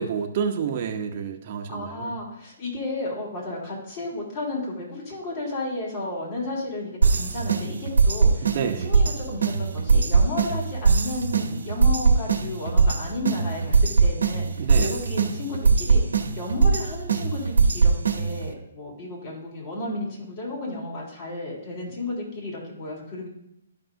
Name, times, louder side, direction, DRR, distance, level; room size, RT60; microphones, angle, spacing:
voice 1, 0.0-2.1 8.5-8.9 14.6-14.9, right 7 dB, 45° right, 4 dB, 0.7 m, -29 dB
voice 2, 1.7-8.5 8.8-14.5 14.8-23.3, left 2 dB, 40° left, -2 dB, 3.3 m, -33 dB
sound 1, 7.0-18.5, right 4 dB, 80° right, 1.0 m, -21 dB
12.5 x 5.3 x 2.7 m, 0.81 s
hypercardioid pair, 145°, 0 cm